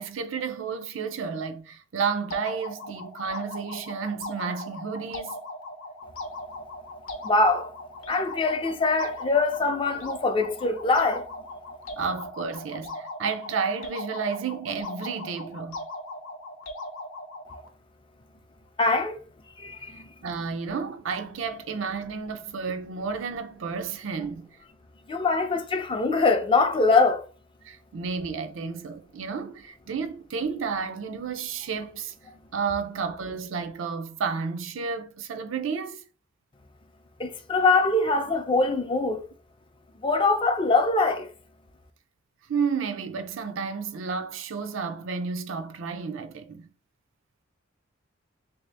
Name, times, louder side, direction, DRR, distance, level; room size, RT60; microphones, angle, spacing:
voice 1, 0.0-5.4 12.0-15.9 20.2-24.5 27.6-32.1 32.5-36.0 42.5-46.7, right 5 dB, 75° right, 0.5 m, -31 dB
sound 1, 2.3-17.7, left 1 dB, 90° left, 0.7 m, -39 dB
voice 2, 7.2-7.7 8.1-11.3 18.8-19.2 19.6-20.1 25.1-27.2 37.2-39.2 40.0-41.3, left 3 dB, 25° left, 0.4 m, -23 dB
3.2 x 2.7 x 3.3 m
head